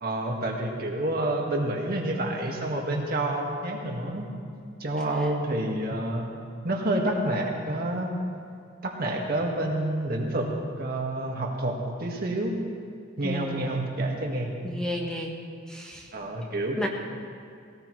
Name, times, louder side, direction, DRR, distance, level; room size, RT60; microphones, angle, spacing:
voice 1, 0.0-4.3 4.8-6.3 6.6-8.1 8.8-10.5 10.8-12.6 13.2-14.5 16.1-16.8, right 1 dB, 55° right, 0 dB, 1.8 m, -28 dB
voice 2, 13.2-13.7 14.6-15.4 15.7-16.1 16.8-16.9, equal, 5° left, -1 dB, 1.3 m, -32 dB
18.0 x 17.5 x 3.2 m, 2.3 s
head